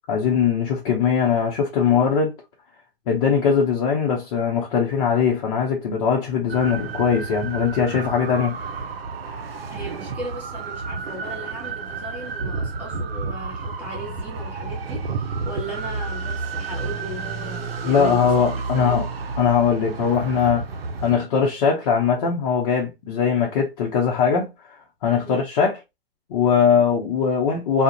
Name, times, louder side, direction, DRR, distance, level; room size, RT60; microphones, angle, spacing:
voice 1, 0.1-2.3 3.1-8.6 17.8-19.1 19.4-20.6 21.0-24.5 25.0-25.8 26.3-27.8, left 6 dB, 40° left, 0.5 m, -20 dB
sound 1, 6.5-21.2, right 4 dB, 75° right, 0.6 m, -31 dB
voice 2, 9.7-19.1 25.2-25.4, equal, 5° right, 0.8 m, -37 dB
2.3 x 2.0 x 2.7 m
figure-of-eight pair, 125°, 30 cm